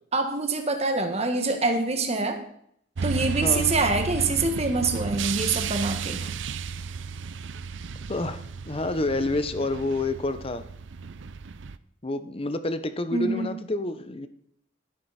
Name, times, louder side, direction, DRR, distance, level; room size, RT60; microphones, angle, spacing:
voice 1, 0.1-2.4 3.0-6.2 13.1-13.5, right 3 dB, 35° right, 5 dB, 1.6 m, -25 dB
sound 1, 3.0-11.8, right 5 dB, 65° right, 0.5 m, -33 dB
voice 2, 3.4-3.8 6.2-6.3 8.1-10.6 12.0-14.3, left 2 dB, 30° left, 11 dB, 0.8 m, -28 dB
12.5 x 11.5 x 4.2 m, 0.69 s
head